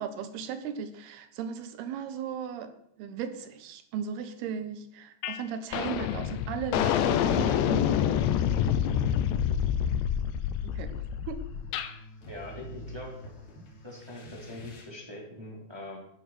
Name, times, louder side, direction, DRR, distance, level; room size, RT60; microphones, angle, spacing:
voice 1, 0.0-8.1 10.7-10.9 11.3-11.4, right 7 dB, 70° right, 10 dB, 3.0 m, -36 dB
sound 1, 5.2-5.4 5.7-11.9, left 9 dB, 90° left, 3.2 m, -27 dB
sound 2, 9.1-14.8, equal, 60° left, 4.9 m, -47 dB
voice 2, 12.3-13.3 13.8-16.0, left 2 dB, 5° right, -2 dB, 3.6 m, -42 dB
14.0 x 11.5 x 6.1 m, 0.73 s
omnidirectional pair, 5.0 m